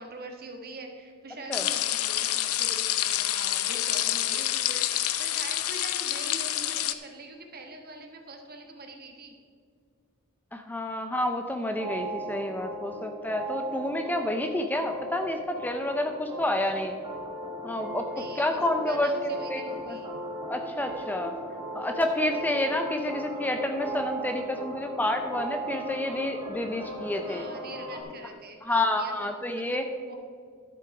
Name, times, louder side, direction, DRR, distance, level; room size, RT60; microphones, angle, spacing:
voice 1, 0.0-9.3 18.1-20.1 27.2-30.1, right 2 dB, 45° right, 3 dB, 1.4 m, -44 dB
sound 1, 1.5-6.9, left 13 dB, 85° left, 0.6 m, -28 dB
voice 2, 10.5-16.9 17.6-18.1 18.4-20.0 20.5-21.4 21.7-27.5 28.6-29.9, left 1 dB, 10° left, 6 dB, 0.5 m, -29 dB
sound 2, 11.7-28.0, equal, 20° right, 1.9 m, -37 dB
12.0 x 7.0 x 4.8 m, 2.1 s
head